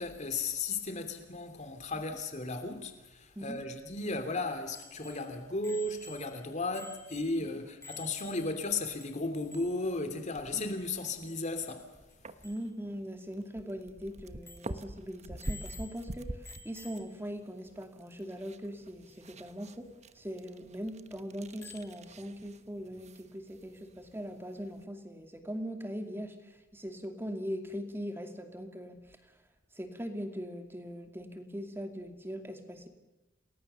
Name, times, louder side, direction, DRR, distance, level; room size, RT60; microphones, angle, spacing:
voice 1, 0.0-11.9, left 3 dB, 35° left, 2.8 m, -35 dB
Bicycle bell, 4.7-8.7 9.0-9.1 9.3-9.9 12.1-12.2 12.4-12.6 13.2-13.3 13.7-13.8 14.4-14.8 15.4-16.1 16.4-17.2 19.1-19.2 21.6-22.0, left 4 dB, 15° left, 3.3 m, -51 dB
sound 1, 9.5-24.8, right 1 dB, 35° right, 1.1 m, -47 dB
voice 2, 12.4-19.9 20.1-29.3 29.7-32.9, equal, 10° right, 2.5 m, -41 dB
29.0 x 20.5 x 6.9 m
head